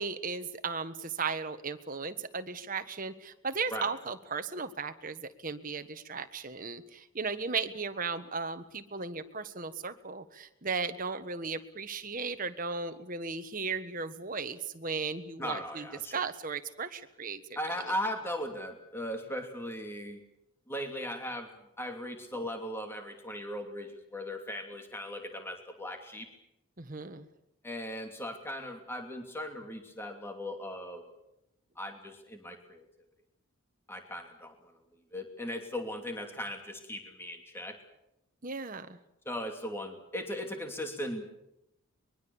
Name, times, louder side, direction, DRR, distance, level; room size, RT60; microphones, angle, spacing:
voice 1, 0.0-15.9 16.1-17.4 26.8-27.3 38.4-39.0, right 4 dB, 40° right, 9 dB, 1.4 m, -36 dB
voice 2, 15.4-16.2 17.6-20.2 20.7-21.5 21.8-26.3 27.6-31.0 31.8-32.9 33.9-34.7 35.1-37.8 39.2-41.3, left 1 dB, 10° left, 4 dB, 2.8 m, -38 dB
23.5 x 22.5 x 7.2 m, 0.84 s
head